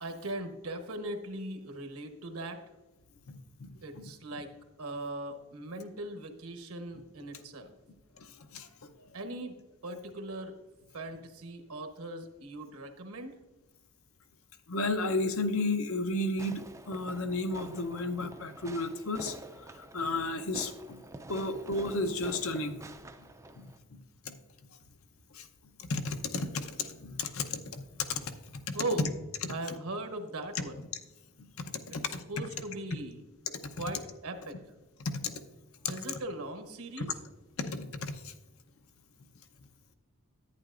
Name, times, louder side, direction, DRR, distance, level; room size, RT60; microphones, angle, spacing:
voice 1, 0.0-2.6 3.8-4.5 4.8-7.7 9.1-9.6 9.8-10.5 10.9-13.4 28.7-29.1 29.5-30.8 32.3-33.2 33.7-34.6 35.9-37.1, right 2 dB, 80° right, 5 dB, 1.1 m, -39 dB
voice 2, 3.3-4.1 8.2-8.7 14.7-19.4 19.9-21.0 21.3-22.9 23.6-23.7 23.9-24.0 24.2-24.4 25.3-25.5 25.8-27.8 28.1-28.8 29.4-29.5 31.9-32.2 35.0-35.3 37.0-37.1 37.6-38.3, left 2 dB, 65° left, 7 dB, 0.8 m, -33 dB
Fireworks, 16.4-23.8, right 1 dB, 15° right, 0.4 m, -48 dB
10.5 x 9.2 x 2.5 m, 1.1 s
head